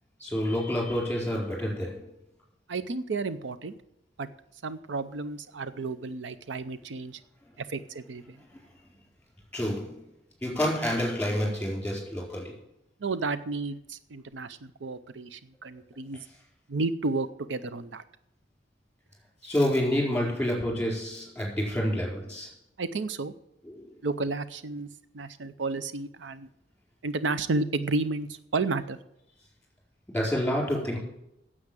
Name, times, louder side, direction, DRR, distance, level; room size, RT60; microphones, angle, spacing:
voice 1, 0.2-2.1 8.5-8.7 9.5-10.0 10.4-12.6 19.4-22.5 23.7-23.9 30.1-31.0, equal, 5° left, -2 dB, 4.4 m, -28 dB
voice 2, 2.7-3.7 4.2-4.3 4.6-7.2 7.6-8.4 13.0-16.3 16.7-18.0 22.8-23.3 24.0-24.9 25.1-26.5 27.0-29.0, right 3 dB, 80° right, 13 dB, 0.6 m, -32 dB
9.5 x 7.8 x 9.1 m, 0.82 s
head